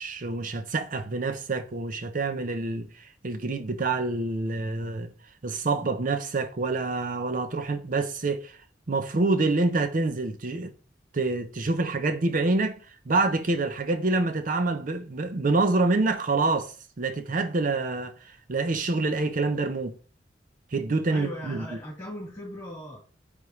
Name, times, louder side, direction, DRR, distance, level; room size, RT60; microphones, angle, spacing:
voice 1, 0.0-5.1 5.4-8.6 8.9-10.7 11.1-20.0 20.7-21.7, right 3 dB, 50° right, 0.6 m, -27 dB
voice 2, 21.1-23.1, left 1 dB, 15° left, 3.2 m, -39 dB
9.3 x 3.5 x 3.1 m
head